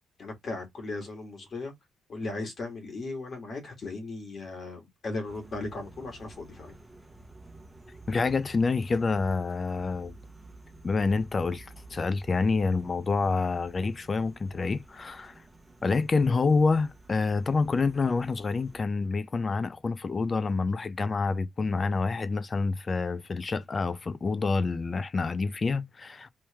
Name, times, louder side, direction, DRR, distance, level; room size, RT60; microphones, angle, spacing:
voice 1, 0.2-1.7 2.1-6.8, left 2 dB, 50° left, 1.8 m, -37 dB
sound 1, 5.2-18.8, right 2 dB, 10° right, 1.2 m, -51 dB
voice 2, 8.1-10.2 10.8-15.3 15.8-26.3, left 4 dB, 35° left, 0.5 m, -27 dB
3.1 x 3.0 x 3.3 m
cardioid pair, 90°, 0 cm